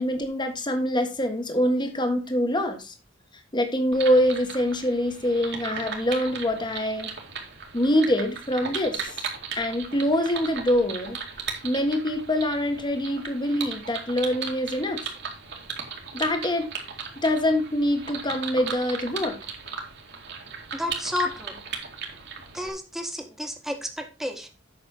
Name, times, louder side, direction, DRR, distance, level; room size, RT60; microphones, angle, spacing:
voice 1, 0.0-2.9 3.5-7.1 7.7-9.2 9.5-11.2 11.6-15.0 16.1-16.7 17.2-19.4, left 1 dB, 25° left, 6 dB, 1.5 m, -25 dB
sound 1, 3.9-22.7, right 6 dB, 60° right, 2.3 m, -37 dB
voice 2, 20.7-21.6 22.5-24.5, left 1 dB, ahead, 4 dB, 1.5 m, -31 dB
8.7 x 6.2 x 4.4 m, 0.32 s
head